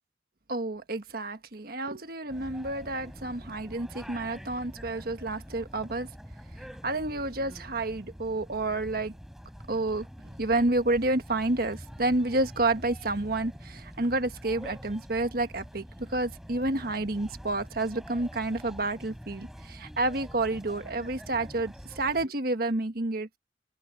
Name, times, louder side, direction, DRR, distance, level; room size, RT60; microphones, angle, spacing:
voice 1, 0.5-6.1 6.8-9.1 9.7-10.1 10.4-23.4, right 2 dB, 55° right, 1.4 m, -29 dB
sound 1, 2.3-22.3, equal, ahead, 4.5 m, -46 dB
open air
head